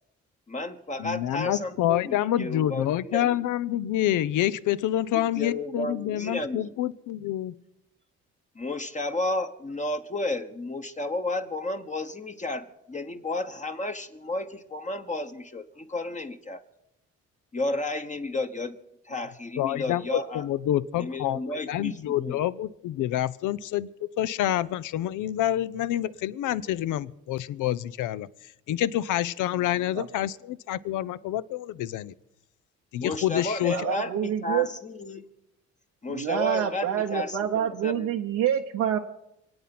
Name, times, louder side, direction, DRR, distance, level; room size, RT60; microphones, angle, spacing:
voice 1, 0.5-3.4 5.1-6.7 8.5-16.6 17.5-18.8 19.0-20.5 21.0-22.4 33.0-35.2 36.0-38.1, left 2 dB, 25° left, 6 dB, 1.1 m, -32 dB
voice 2, 1.0-7.6 19.6-23.9 24.2-28.3 28.7-32.1 32.9-33.9, left 12 dB, 85° left, 16 dB, 0.7 m, -27 dB
voice 3, 33.7-34.7 36.1-39.0, right 10 dB, 85° right, 2 dB, 1.0 m, -27 dB
26.0 x 8.8 x 6.0 m, 0.84 s
cardioid pair, 90°, 30 cm